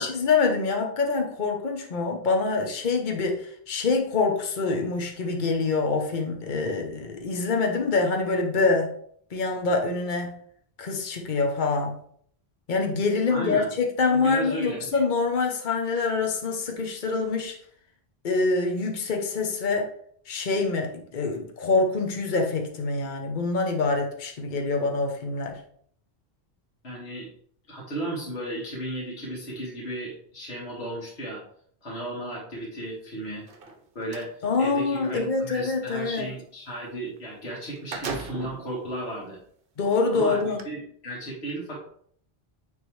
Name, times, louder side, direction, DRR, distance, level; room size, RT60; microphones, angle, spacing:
voice 1, 0.0-8.9 9.3-10.3 10.8-12.0 12.7-17.6 18.2-19.9 20.3-25.6 34.4-36.3 39.8-40.6, left 4 dB, 50° left, 2 dB, 1.1 m, -25 dB
voice 2, 13.3-13.7 14.1-15.0 26.8-27.3 27.7-31.4 31.8-33.4 34.0-34.3 34.6-39.4 40.1-41.8, right 1 dB, 90° left, -5 dB, 2.2 m, -34 dB
sound 1, 33.4-34.3 37.2-37.3 37.6-38.7 39.4-39.5 40.4-40.6, right 4 dB, 60° right, 0.9 m, -36 dB
9.1 x 3.7 x 3.2 m, 0.62 s
omnidirectional pair, 1.0 m